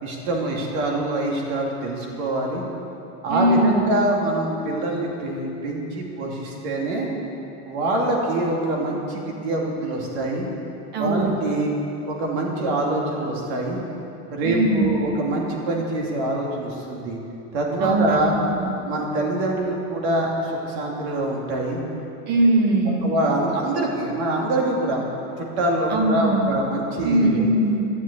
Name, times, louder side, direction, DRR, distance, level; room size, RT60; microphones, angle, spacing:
voice 1, 0.0-2.6 3.2-7.1 7.6-10.5 11.0-11.7 12.1-13.8 14.3-17.2 17.5-18.3 18.8-21.8 22.4-22.5 23.0-25.0 25.4-27.4, right 1 dB, 70° right, -1 dB, 2.7 m, -25 dB
voice 2, 3.3-3.8 10.9-11.3 14.4-15.0 17.8-18.3 18.6-18.7 22.3-23.2 25.9-26.6 27.0-27.8, right 2 dB, 30° right, 3 dB, 1.2 m, -20 dB
13.0 x 7.3 x 8.3 m, 2.8 s
cardioid pair, 180°, 34 cm